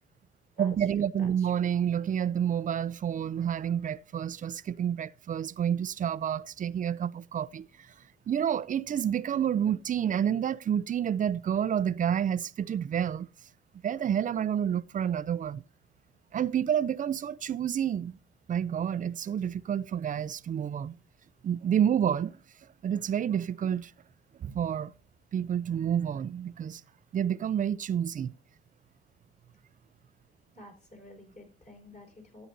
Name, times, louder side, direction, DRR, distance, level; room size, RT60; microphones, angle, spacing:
voice 1, 0.6-7.7 8.3-13.3 13.8-15.6 16.3-18.2 18.5-20.9 21.4-22.4 22.8-23.9 24.4-24.9 25.3-26.8 27.1-28.3, right 9 dB, 40° right, 0.4 m, -29 dB
voice 2, 1.2-1.6 30.5-32.5, left 1 dB, 35° left, 5.1 m, -51 dB
13.0 x 9.0 x 2.6 m
cardioid pair, 90°, 20 cm